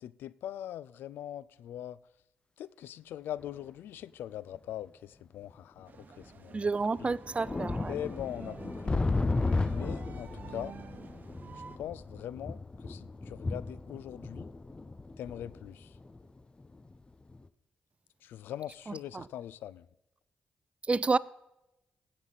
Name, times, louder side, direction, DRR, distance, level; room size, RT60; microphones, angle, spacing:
voice 1, 0.0-2.0 2.6-5.9 6.2-6.7 7.0-7.1 7.9-9.1 9.7-10.7 11.8-14.4 15.2-16.0 18.2-19.9, left 11 dB, 85° left, 0.3 m, -41 dB
sound 1, 3.4-3.5 4.5-4.6 5.8-5.9 6.2-6.3 6.8-16.9 17.3-17.5, left 3 dB, 30° left, 0.6 m, -35 dB
sound 2, 5.9-11.8, right 5 dB, 60° right, 0.9 m, -50 dB
voice 2, 6.5-7.9 19.1-19.2 20.9-21.2, right 4 dB, 35° right, 0.4 m, -29 dB
16.0 x 7.0 x 4.1 m
supercardioid pair, 55°, 3 cm